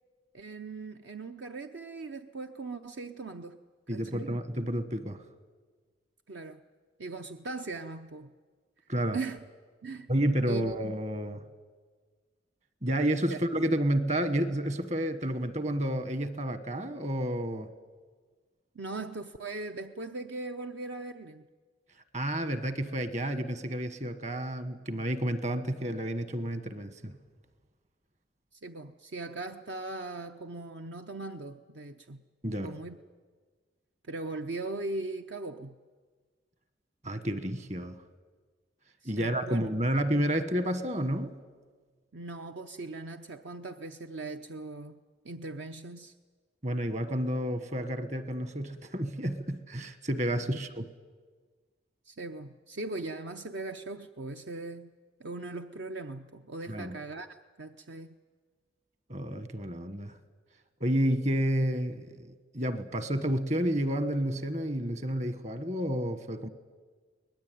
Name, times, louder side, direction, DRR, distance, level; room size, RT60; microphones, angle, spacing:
voice 1, 0.3-3.6 3.9-4.4 6.3-6.6 7.0-8.3 9.1-9.4 9.8-10.1 10.5-10.6 13.3-13.4 18.7-21.4 28.5-32.2 32.6-33.0 34.1-35.8 39.0-39.6 42.1-45.0 45.2-46.1 50.5-50.6 52.1-54.9 55.2-58.1, right 3 dB, 65° right, 0.7 m, -39 dB
voice 2, 3.9-5.2 8.9-9.2 10.1-11.4 12.8-17.7 22.1-27.1 32.4-32.7 37.0-38.0 39.0-41.3 46.6-50.9 56.7-57.0 59.1-60.2 60.8-62.2 62.5-66.5, right 1 dB, 40° right, 1.4 m, -30 dB
23.0 x 19.5 x 9.3 m
head